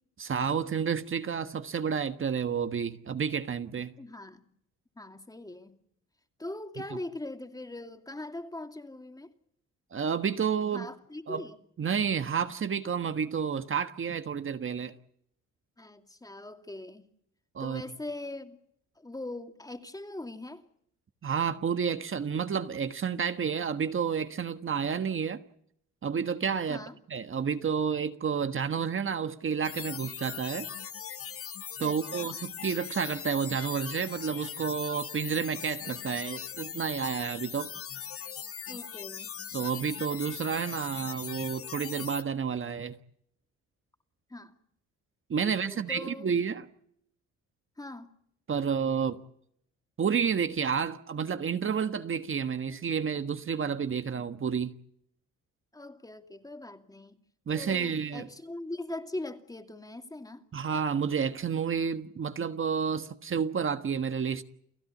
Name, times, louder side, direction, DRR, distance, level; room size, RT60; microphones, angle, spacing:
voice 1, 0.2-3.9 9.9-10.9 11.3-11.4 11.8-14.9 17.5-17.8 21.2-25.4 26.0-26.8 27.1-30.7 31.8-37.7 39.5-42.9 45.3-46.6 48.5-49.2 50.0-54.7 57.5-58.3 60.5-64.4, right 6 dB, 40° right, 1.5 m, -30 dB
voice 2, 4.0-4.4 5.0-5.8 6.4-9.3 10.7-11.6 15.8-17.0 17.6-18.6 19.0-20.6 26.7-27.0 31.8-32.3 38.7-39.3 44.3-44.6 45.4-46.3 47.8-48.1 55.7-57.2 57.5-60.4, left 2 dB, 10° left, 2.6 m, -41 dB
sound 1, 29.6-42.2, left 8 dB, 50° left, 1.5 m, -40 dB
30.0 x 16.5 x 8.6 m
cardioid pair, 90°, 30 cm